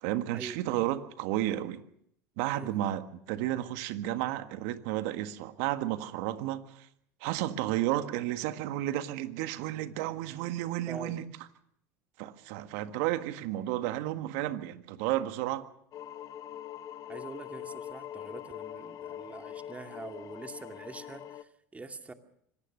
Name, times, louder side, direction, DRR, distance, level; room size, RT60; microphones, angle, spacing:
voice 1, 0.0-1.8 2.4-6.7 7.2-11.3 12.2-15.6, right 14 dB, 70° right, 10 dB, 1.6 m, -32 dB
voice 2, 10.9-11.3 17.1-22.1, right 3 dB, 15° right, 6 dB, 2.3 m, -45 dB
sound 1, 15.9-21.4, left 10 dB, 50° left, 1.0 m, -43 dB
25.5 x 18.5 x 6.6 m, 0.71 s
hypercardioid pair, 85°, 8 cm